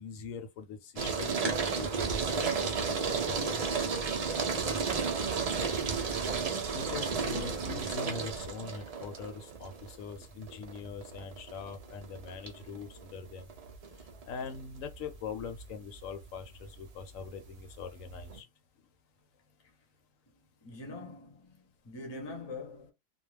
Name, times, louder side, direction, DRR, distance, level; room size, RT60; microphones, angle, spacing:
voice 1, 0.0-3.7 4.5-4.8 6.7-13.5 14.3-18.5, left 5 dB, 80° left, 1.0 m, -42 dB
sound 1, 1.0-18.4, right 5 dB, 80° right, 0.3 m, -33 dB
voice 2, 20.6-22.9, left 2 dB, 25° left, 0.6 m, -43 dB
2.3 x 2.1 x 3.2 m
omnidirectional pair, 1.4 m